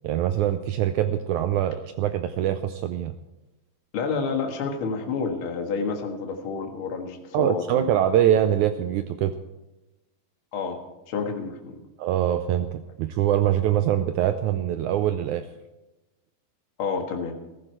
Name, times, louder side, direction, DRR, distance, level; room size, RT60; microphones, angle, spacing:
voice 1, 0.0-3.1 7.3-9.3 12.0-15.5, right 11 dB, 85° right, 9 dB, 1.7 m, -23 dB
voice 2, 3.9-7.9 10.5-10.8 11.1-11.8 16.8-17.4, left 5 dB, 45° left, 3 dB, 2.0 m, -29 dB
14.5 x 14.5 x 4.6 m, 1.0 s
omnidirectional pair, 4.1 m